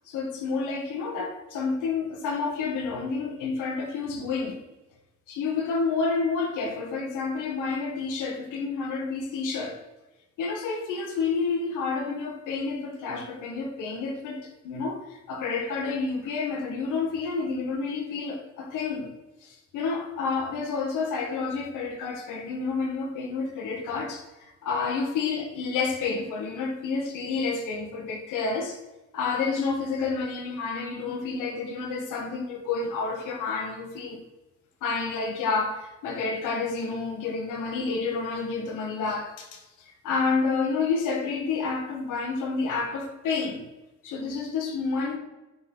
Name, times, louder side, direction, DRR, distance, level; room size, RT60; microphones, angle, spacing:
voice 1, 0.1-4.6 5.3-9.8 10.4-19.1 19.4-28.8 29.1-34.2 34.8-43.6 44.0-45.2, left 4 dB, 90° left, 1.4 m, -29 dB
10.5 x 4.1 x 3.8 m
cardioid pair, 90°, 30 cm